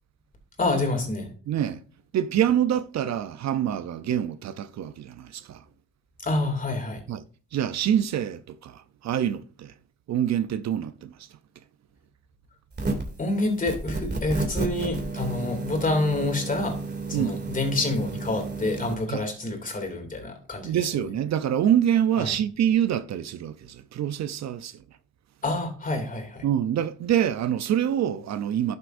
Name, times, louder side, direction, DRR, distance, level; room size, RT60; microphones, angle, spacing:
voice 1, 0.6-1.3 6.2-7.0 13.2-16.8 17.1-20.8 22.2-22.3 25.4-26.4, left 2 dB, 25° left, 2.7 m, -27 dB
voice 2, 1.5-1.8 2.1-5.6 7.1-7.2 7.5-9.7 10.1-11.3 17.1-17.4 19.1-19.2 20.6-24.8 26.4-28.8, right 10 dB, 60° right, 0.6 m, -26 dB
sound 1, 12.7-13.2 13.7-18.9, right 3 dB, 35° right, 2.6 m, -32 dB
11.5 x 6.8 x 2.6 m
cardioid pair, 90°, 30 cm